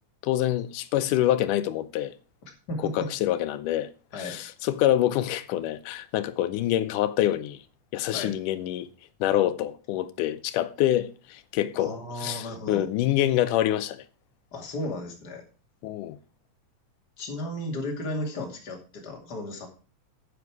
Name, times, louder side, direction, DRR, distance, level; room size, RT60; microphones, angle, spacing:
voice 1, 0.2-2.1 2.9-3.9 4.2-7.6 7.9-8.9 9.2-14.0 15.8-16.2, left 13 dB, 85° left, 2.3 m, -26 dB
voice 2, 2.7-3.1 4.1-4.4 8.1-8.4 11.8-12.9 14.5-15.4 17.2-19.7, left 1 dB, 35° left, 2.7 m, -34 dB
9.8 x 8.2 x 4.7 m
omnidirectional pair, 3.6 m